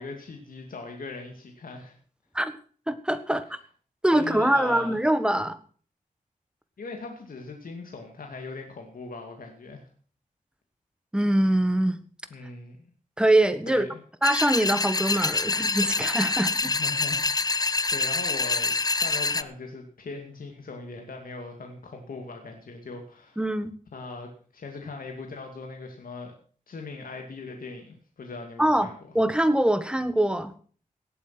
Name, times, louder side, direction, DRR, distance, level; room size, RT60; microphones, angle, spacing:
voice 1, 0.0-2.0 3.5-3.6 4.1-5.0 6.8-9.9 12.3-12.9 13.7-14.0 16.5-23.4 23.9-26.3 26.7-29.0, left 3 dB, 80° left, 3 dB, 2.5 m, -40 dB
voice 2, 2.9-3.5 4.0-5.6 11.1-12.0 13.2-13.8 14.2-16.7 23.4-23.7 28.6-28.9 29.1-30.5, right 1 dB, 5° right, 11 dB, 1.5 m, -23 dB
sound 1, 14.2-19.4, left 3 dB, 25° left, 0.6 m, -26 dB
17.5 x 8.5 x 6.0 m, 0.43 s
wide cardioid pair, 105°, 14 cm